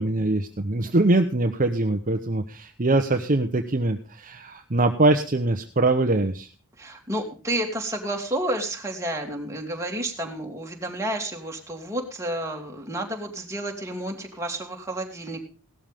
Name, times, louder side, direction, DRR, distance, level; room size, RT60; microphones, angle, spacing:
voice 1, 0.0-6.5, right 2 dB, 40° right, 6 dB, 1.0 m, -23 dB
voice 2, 6.8-15.4, right 1 dB, 15° right, 1 dB, 2.9 m, -30 dB
17.5 x 13.0 x 3.6 m, 0.35 s
head